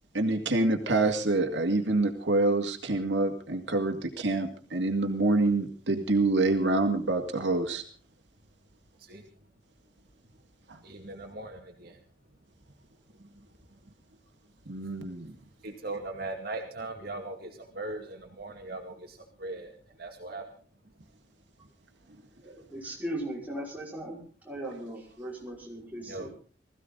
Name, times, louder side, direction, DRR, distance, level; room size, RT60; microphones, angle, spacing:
voice 1, 0.1-7.8 10.7-10.8 14.7-15.4, right 2 dB, 85° right, 4 dB, 2.2 m, -26 dB
voice 2, 10.8-12.0 15.6-19.7 20.0-20.4 26.0-26.3, right 2 dB, 55° right, 3 dB, 2.3 m, -39 dB
voice 3, 22.4-24.2 24.5-26.3, right 1 dB, 10° right, -3 dB, 5.3 m, -38 dB
20.5 x 15.5 x 4.0 m, 0.38 s
head